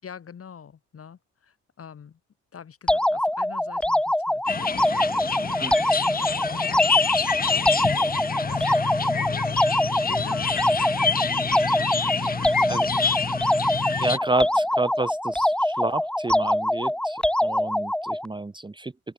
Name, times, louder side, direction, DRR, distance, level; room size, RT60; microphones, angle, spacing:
voice 1, 0.0-2.2 2.5-11.3 11.6-13.2 14.4-14.5, left 7 dB, 50° left, 5.4 m, -45 dB
sound 1, 2.9-18.3, left 1 dB, 5° left, 0.6 m, -24 dB
sound 2, 4.5-14.2, left 5 dB, 30° left, 1.2 m, -27 dB
voice 2, 14.0-18.9, right 2 dB, 15° right, 1.4 m, -30 dB
open air
cardioid pair, 90°, 30 cm